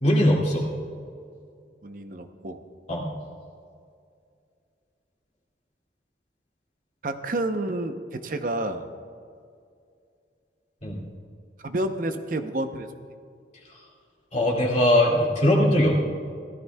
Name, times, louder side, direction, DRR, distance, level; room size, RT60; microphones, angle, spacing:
voice 1, 0.0-0.7 2.9-3.1 10.8-11.0 14.3-16.0, left 1 dB, 40° left, -3 dB, 2.3 m, -20 dB
voice 2, 1.8-2.6 7.0-8.9 11.6-12.9, right 1 dB, 45° right, 7 dB, 0.7 m, -29 dB
17.0 x 13.5 x 2.3 m, 2.3 s
head